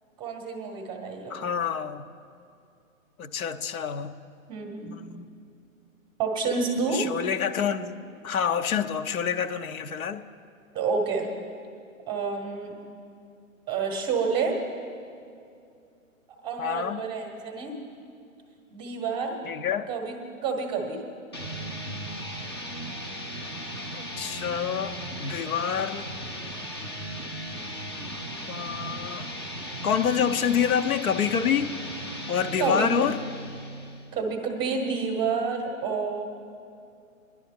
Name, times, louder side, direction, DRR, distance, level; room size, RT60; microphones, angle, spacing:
voice 1, 0.2-1.5 4.5-4.9 6.2-7.0 10.7-11.3 12.1-12.7 13.7-14.6 16.4-17.8 18.7-19.4 19.9-20.2 20.4-21.0 32.6-33.1 34.1-36.2, right 4 dB, 10° right, 3 dB, 0.8 m, -29 dB
voice 2, 1.3-2.1 3.2-4.1 4.8-5.3 6.9-8.0 8.2-10.2 16.6-17.0 19.5-19.9 23.9-24.9 25.2-26.1 28.5-29.3 29.8-31.8 32.3-33.2, left 8 dB, 80° left, 10 dB, 0.8 m, -27 dB
sound 1, 21.3-34.2, equal, 20° left, 0.4 m, -37 dB
20.0 x 11.0 x 3.6 m, 2.5 s
hypercardioid pair, 150°, 41 cm